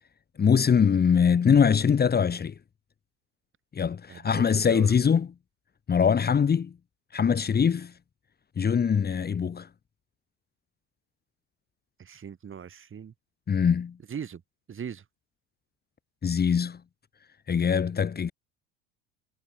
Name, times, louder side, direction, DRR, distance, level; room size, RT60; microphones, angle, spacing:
voice 1, 0.4-2.5 3.7-5.3 5.9-6.7 7.1-7.9 8.6-9.7 13.5-14.0 16.2-16.8 17.5-18.3, left 7 dB, 25° left, 1.7 m, -22 dB
voice 2, 4.1-5.0 12.0-13.1 14.1-14.4 14.7-15.0, right 7 dB, 35° right, 6.7 m, -39 dB
hypercardioid pair, 70°, 37 cm